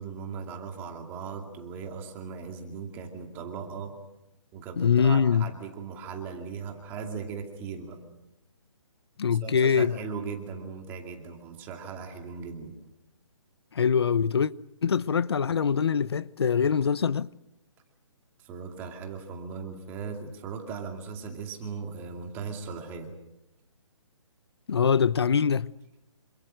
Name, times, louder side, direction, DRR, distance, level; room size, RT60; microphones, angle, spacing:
voice 1, 0.0-4.0 4.5-8.0 9.4-12.7 18.4-23.1, right 5 dB, 10° right, 2.4 m, -38 dB
voice 2, 4.8-5.5 9.2-9.9 13.7-14.5 14.8-17.3 24.7-25.7, left 6 dB, 50° left, 0.8 m, -23 dB
27.5 x 26.0 x 6.4 m
hypercardioid pair, 170°, 17 cm